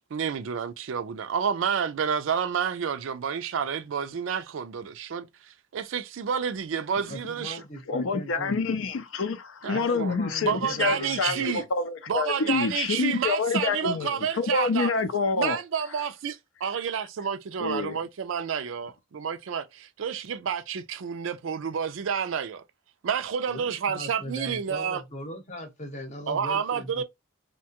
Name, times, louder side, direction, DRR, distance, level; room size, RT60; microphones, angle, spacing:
voice 1, 0.1-7.6 9.6-10.2 10.4-11.6 12.1-14.9 15.3-22.6 23.0-25.0 26.3-27.0, right 7 dB, 65° right, 0.4 m, -29 dB
voice 2, 7.1-8.7 9.7-11.7 23.5-27.0, left 1 dB, 35° left, 0.8 m, -39 dB
voice 3, 7.9-15.6 17.6-18.0, left 4 dB, 70° left, 0.5 m, -27 dB
2.7 x 2.2 x 2.8 m
head